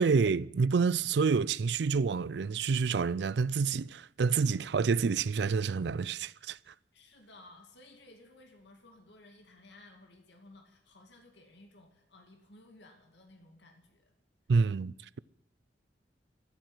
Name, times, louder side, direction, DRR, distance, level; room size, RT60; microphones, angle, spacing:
voice 1, 0.0-6.6 14.5-15.2, right 5 dB, 65° right, 0.4 m, -28 dB
voice 2, 6.9-14.1, left 2 dB, 70° left, 2.3 m, -57 dB
14.5 x 7.7 x 9.5 m
head